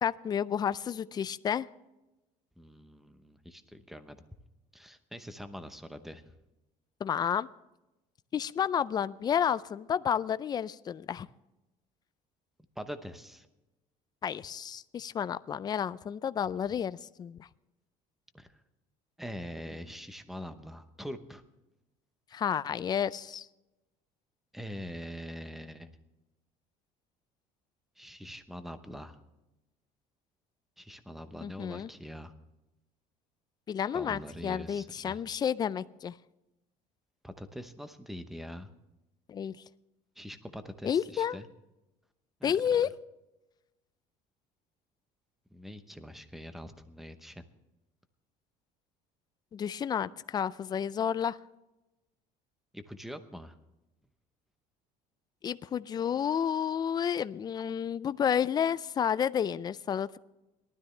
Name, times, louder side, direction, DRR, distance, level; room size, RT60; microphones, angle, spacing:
voice 1, 0.0-1.7 7.0-7.5 8.3-11.3 14.2-17.5 22.3-23.5 31.4-31.9 33.7-36.1 39.3-39.5 40.8-41.4 42.4-42.9 49.5-51.4 55.4-60.2, left 8 dB, 25° left, 16 dB, 0.4 m, -31 dB
voice 2, 2.6-4.2 4.7-6.2 12.8-13.5 18.3-18.6 19.2-21.4 24.5-25.9 28.0-29.2 30.8-32.3 33.9-35.2 37.2-38.7 40.2-41.5 42.4-42.5 45.5-47.5 52.7-53.6, equal, ahead, 10 dB, 0.9 m, -43 dB
19.0 x 12.5 x 3.3 m, 0.99 s
cardioid pair, 140°, 15 cm